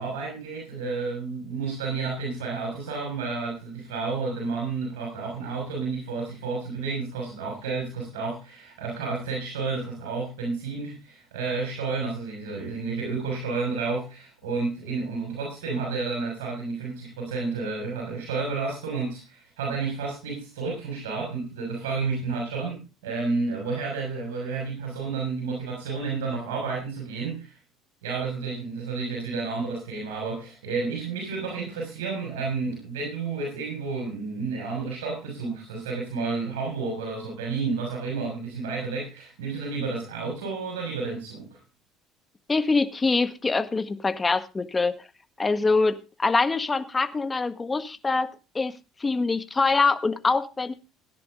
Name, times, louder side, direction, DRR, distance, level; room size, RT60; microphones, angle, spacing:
voice 1, 0.0-27.5 28.0-41.6, right 4 dB, 80° right, 0 dB, 6.3 m, -31 dB
voice 2, 42.5-45.1 45.4-50.7, left 3 dB, 25° left, 12 dB, 1.5 m, -24 dB
17.0 x 10.5 x 3.8 m, 0.30 s
hypercardioid pair, 65°, 0 cm